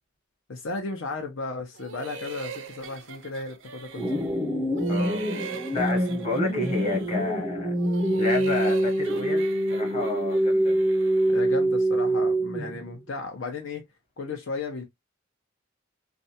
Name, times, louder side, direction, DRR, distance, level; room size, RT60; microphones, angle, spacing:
voice 1, 0.5-4.2 11.3-13.8 14.2-14.8, left 3 dB, 75° left, 0.7 m, -35 dB
sound 1, 1.8-4.4 4.7-7.3 7.7-11.5, right 3 dB, 65° right, 0.5 m, -41 dB
sound 2, 4.0-12.9, right 1 dB, 15° right, 0.4 m, -25 dB
voice 2, 4.9-5.2 5.7-7.7 8.2-10.8, left 2 dB, 30° left, 1.0 m, -30 dB
2.5 x 2.2 x 2.7 m
head